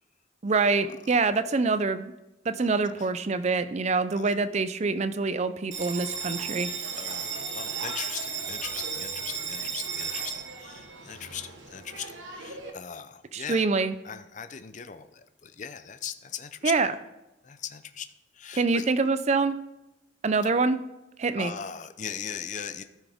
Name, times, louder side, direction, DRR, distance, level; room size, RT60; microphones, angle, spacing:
voice 1, 0.4-2.1 2.5-6.7 13.3-13.9 16.6-16.9 18.5-19.5 20.2-20.8 21.2-21.5, right 4 dB, 35° right, 12 dB, 0.4 m, -25 dB
Bell, 5.7-12.7, right 5 dB, 75° right, 1.2 m, -35 dB
voice 2, 7.0-12.1 12.3-13.6 14.0-16.7 17.4-18.1 18.3-18.9 21.4-22.8, left 7 dB, 40° left, 11 dB, 0.5 m, -39 dB
13.5 x 6.0 x 3.5 m, 0.94 s
head